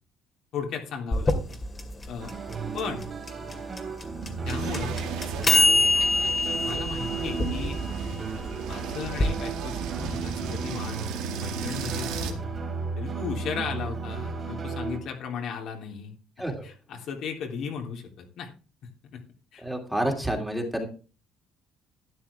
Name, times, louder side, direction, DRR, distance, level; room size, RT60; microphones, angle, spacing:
voice 1, 0.5-1.6 2.1-2.3 2.7-3.0 4.4-5.0 5.5-5.8 6.5-7.8 8.3-11.0 11.4-12.4 12.9-16.1 16.6-18.5 19.0-19.2 19.5-19.6, left 6 dB, 65° left, 2 dB, 3.3 m, -36 dB
sound 1, 1.1-9.3, left 3 dB, 25° left, 2.4 m, -26 dB
sound 2, 2.2-15.0, right 4 dB, 35° right, 2.8 m, -35 dB
sound 3, 4.5-12.3, right 6 dB, 80° right, 2.1 m, -35 dB
voice 2, 19.6-20.9, right 1 dB, ahead, 2 dB, 2.7 m, -29 dB
12.5 x 9.4 x 3.5 m, 0.35 s
cardioid pair, 105°, 0 cm